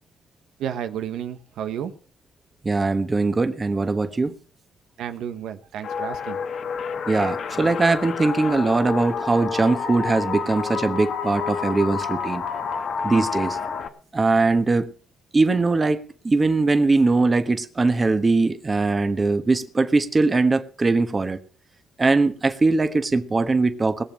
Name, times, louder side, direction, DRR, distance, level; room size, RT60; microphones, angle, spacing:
voice 1, 0.6-1.9 5.0-6.5, right 9 dB, 80° right, 8 dB, 1.2 m, -31 dB
voice 2, 2.6-4.3 7.1-12.4 13.0-13.6 14.1-14.9 15.3-21.4 22.0-24.0, right 3 dB, 25° right, 9 dB, 1.3 m, -21 dB
sound 1, 5.8-13.9, left 6 dB, 60° left, 1.5 m, -29 dB
20.0 x 7.1 x 6.1 m, 0.42 s
cardioid pair, 90°, 0 cm